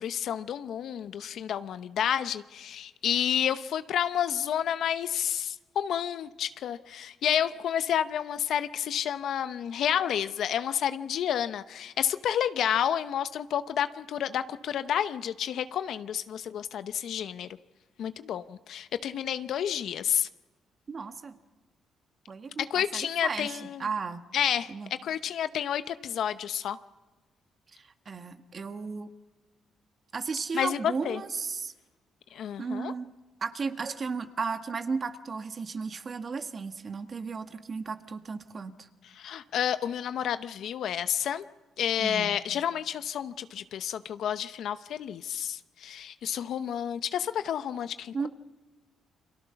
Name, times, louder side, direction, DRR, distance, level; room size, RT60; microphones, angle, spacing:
voice 1, 0.0-17.5 18.0-20.3 22.6-23.8 24.3-24.7 25.0-26.8 30.5-31.2 32.3-32.9 39.2-41.4 41.8-48.3, left 9 dB, 70° left, 11 dB, 0.8 m, -30 dB
voice 2, 20.9-21.3 22.3-24.3 24.7-24.9 27.7-29.1 30.1-31.7 32.6-33.1 33.4-38.9 42.0-42.4 48.1-48.3, right 5 dB, 40° right, 7 dB, 1.7 m, -35 dB
30.0 x 23.5 x 5.9 m, 1.2 s
cardioid pair, 90°, 0 cm